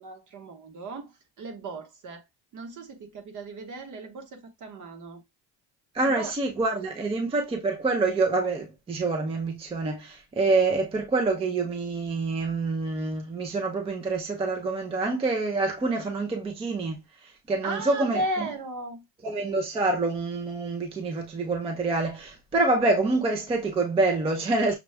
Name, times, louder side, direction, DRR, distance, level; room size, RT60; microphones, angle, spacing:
voice 1, 0.0-2.2 2.5-5.2 6.0-6.3 17.6-19.0, right 1 dB, 50° right, 1.1 m, -36 dB
voice 2, 5.9-18.2 19.2-24.7, right 3 dB, 15° right, 0.5 m, -26 dB
6.1 x 2.3 x 3.2 m
cardioid pair, 160°, 39 cm